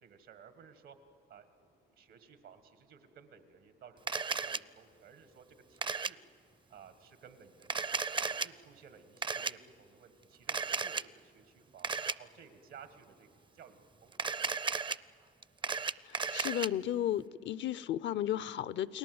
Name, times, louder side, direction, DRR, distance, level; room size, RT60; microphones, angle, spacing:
voice 1, 0.0-1.0 1.3-6.2 6.7-7.9 8.2-14.9, right 7 dB, 85° right, 9 dB, 1.7 m, -56 dB
Camera, 4.1-4.6 5.8-6.1 7.6-8.5 9.2-9.5 10.5-11.0 11.8-12.1 14.1-15.0 15.4-16.7, right 5 dB, 25° right, 0.5 m, -34 dB
voice 2, 16.1-19.0, left 11 dB, 70° left, 18 dB, 0.6 m, -34 dB
30.0 x 20.0 x 7.9 m, 2.9 s
cardioid pair, 90°, 20 cm